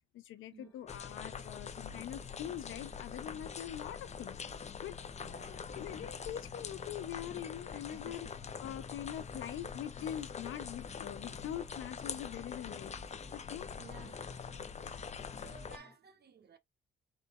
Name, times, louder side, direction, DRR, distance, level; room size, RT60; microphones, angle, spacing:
voice 1, 0.1-4.4 4.8-5.0 5.7-8.3 8.6-12.9 13.3-13.7 14.8-15.0, left 11 dB, 80° left, 0.9 m, -43 dB
sound 1, 0.6-16.0, left 3 dB, 20° left, 1.5 m, -63 dB
sound 2, 0.9-15.8, left 6 dB, 35° left, 0.8 m, -44 dB
voice 2, 5.2-5.6 7.9-8.2 13.8-14.2 15.4-16.6, right 5 dB, 55° right, 1.2 m, -55 dB
4.2 x 3.1 x 3.7 m
cardioid pair, 90°, 20 cm